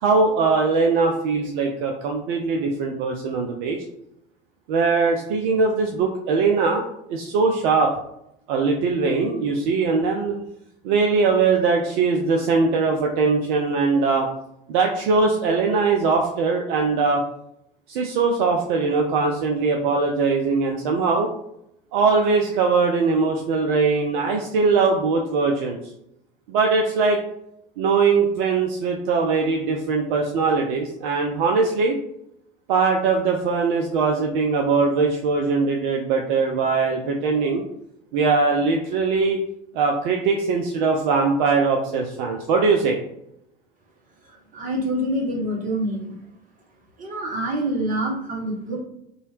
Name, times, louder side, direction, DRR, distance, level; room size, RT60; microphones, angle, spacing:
voice 1, 0.0-3.8 4.7-6.8 7.1-7.9 8.5-10.4 10.8-14.3 14.7-17.2 17.9-21.3 21.9-25.8 26.5-27.2 27.8-32.0 32.7-37.6 38.1-39.4 39.7-43.0, right 4 dB, 55° right, 1 dB, 0.5 m, -21 dB
voice 2, 44.5-46.2 47.0-48.8, right 1 dB, 30° right, -1 dB, 1.0 m, -26 dB
2.7 x 2.3 x 3.2 m, 0.79 s
figure-of-eight pair, 70°, 29 cm